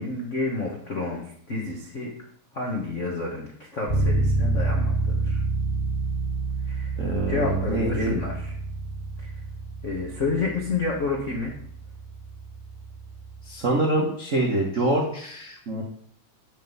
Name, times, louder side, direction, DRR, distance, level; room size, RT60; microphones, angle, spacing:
voice 1, 0.0-2.1 2.5-5.4 6.7-7.0 7.3-8.5 9.2-9.4 9.8-11.5, left 3 dB, 75° left, -1 dB, 0.6 m, -30 dB
Bass guitar, 3.9-13.6, right 2 dB, 30° left, 1.4 m, -28 dB
voice 2, 7.0-8.2 13.5-15.8, right 1 dB, 75° right, -1 dB, 0.7 m, -25 dB
7.8 x 5.3 x 5.4 m, 0.65 s
omnidirectional pair, 3.3 m